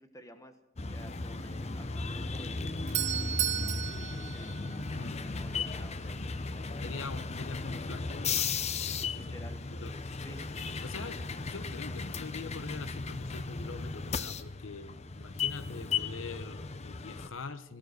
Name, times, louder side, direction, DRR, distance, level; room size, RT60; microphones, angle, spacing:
voice 1, 0.0-4.6 4.9-6.9 9.2-9.7 10.2-10.5, equal, 15° left, 7 dB, 1.3 m, -52 dB
sound 1, 0.8-17.3, left 4 dB, 30° left, 0.6 m, -36 dB
Doorbell, 2.5-5.4, right 11 dB, 35° right, 0.6 m, -34 dB
voice 2, 4.9-5.3 6.8-8.6 8.9-9.2 9.7-10.2 10.8-17.8, left 4 dB, 65° left, 12 dB, 0.8 m, -43 dB
18.0 x 12.0 x 6.6 m, 0.97 s
head